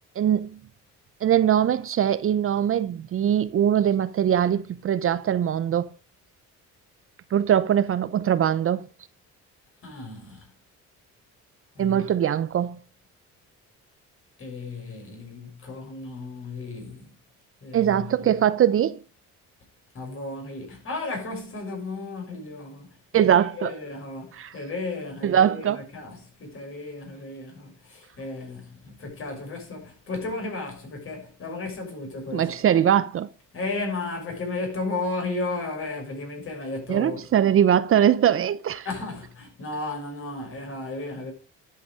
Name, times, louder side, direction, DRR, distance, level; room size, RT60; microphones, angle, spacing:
voice 1, 0.2-0.6 1.2-5.9 7.3-8.9 11.8-12.8 17.7-19.0 23.1-23.8 24.3-24.5 25.2-25.8 32.3-33.3 36.9-38.8, right 9 dB, 45° right, 0.7 m, -22 dB
voice 2, 9.8-10.4 11.7-12.1 14.4-17.1 17.6-18.1 19.9-22.9 23.1-32.5 33.5-37.2 38.8-41.3, left 3 dB, 45° left, 6.2 m, -34 dB
11.0 x 8.1 x 5.0 m
cardioid pair, 145°, 31 cm